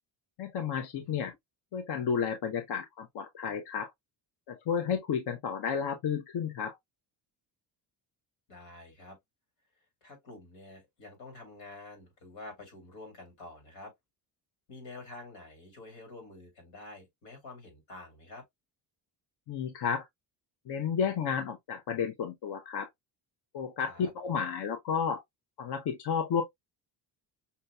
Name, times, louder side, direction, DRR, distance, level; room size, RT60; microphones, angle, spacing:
voice 1, 0.4-1.3 1.7-3.9 4.5-6.8 19.5-20.1 20.7-22.9 23.5-25.2 25.6-26.4, left 7 dB, 60° left, 0.8 m, -32 dB
voice 2, 8.5-9.2 10.0-13.9 14.7-18.4 23.8-24.1, left 2 dB, 90° left, 2.6 m, -48 dB
5.6 x 2.7 x 2.2 m
cardioid pair, 100°, 44 cm